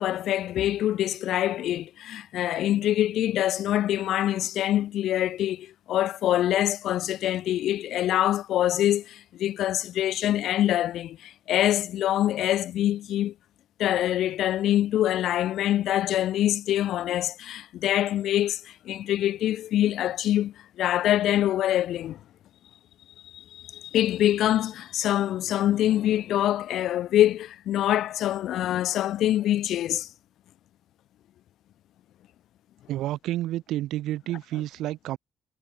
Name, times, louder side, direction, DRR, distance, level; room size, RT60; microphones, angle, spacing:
voice 1, 0.0-13.3 13.8-22.2 23.2-30.1, left 12 dB, 65° left, 1.8 m, -25 dB
voice 2, 32.9-35.2, right 14 dB, 80° right, 4.4 m, -30 dB
cardioid pair, 165°, 0 cm